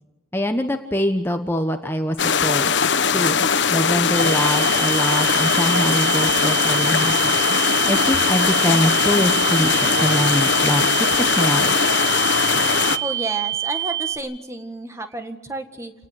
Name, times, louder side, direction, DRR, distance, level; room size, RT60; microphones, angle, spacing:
voice 1, 0.3-7.4 7.8-12.0, equal, 10° left, 6 dB, 1.2 m, -24 dB
sound 1, 2.2-13.0, left 6 dB, 70° left, 1.1 m, -20 dB
sound 2, 4.1-14.2, right 13 dB, 85° right, 7.6 m, -26 dB
sound 3, 5.7-9.2 9.7-10.9, left 1 dB, 50° right, 6.5 m, -38 dB
voice 2, 13.0-15.9, right 2 dB, 15° right, 7 dB, 1.8 m, -31 dB
29.0 x 19.0 x 8.3 m, 1.1 s
head